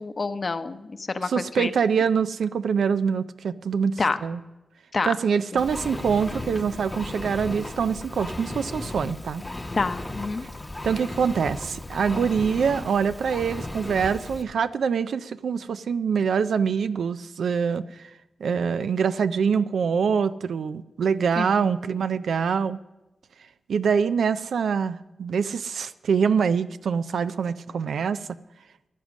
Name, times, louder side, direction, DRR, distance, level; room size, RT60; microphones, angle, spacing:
voice 1, 0.0-1.7 4.0-4.2 4.9-5.1 5.5-5.6 9.7-10.4 21.4-21.8, left 3 dB, 45° left, 10 dB, 0.8 m, -28 dB
voice 2, 1.2-4.4 5.0-9.4 10.8-18.1 18.4-22.8 23.7-28.3, right 6 dB, 90° right, 12 dB, 0.4 m, -25 dB
Engine, 5.6-14.4, left 2 dB, 20° left, 0.9 m, -35 dB
15.0 x 10.5 x 6.2 m, 1.0 s
cardioid pair, 80°, 0 cm